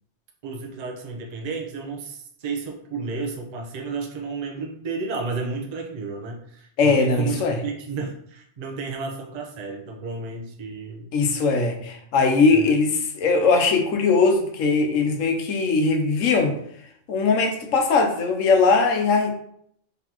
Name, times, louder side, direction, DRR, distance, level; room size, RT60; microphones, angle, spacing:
voice 1, 0.4-11.1 12.5-12.7, right 4 dB, 40° right, 0 dB, 0.7 m, -32 dB
voice 2, 6.8-7.6 11.1-16.6 17.1-19.3, left 4 dB, 90° left, 4 dB, 1.1 m, -20 dB
4.0 x 3.4 x 2.9 m, 0.68 s
omnidirectional pair, 1.3 m